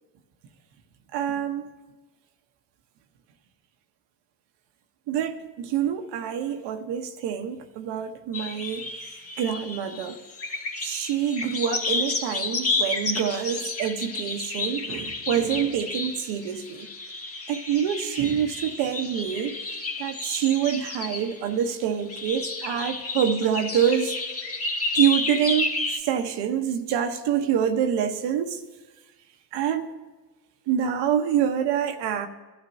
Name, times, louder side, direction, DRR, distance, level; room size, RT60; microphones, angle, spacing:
voice 1, 1.1-1.7 5.1-8.9 9.4-10.2 10.8-16.9 17.5-19.6 20.0-24.2 24.9-28.6 29.5-29.9 30.7-32.3, right 9 dB, 75° right, 1.1 m, -26 dB
sound 1, 8.3-21.5 22.1-26.0, left 3 dB, 35° left, 1.7 m, -31 dB
19.5 x 12.5 x 2.7 m
supercardioid pair, 85°, 41 cm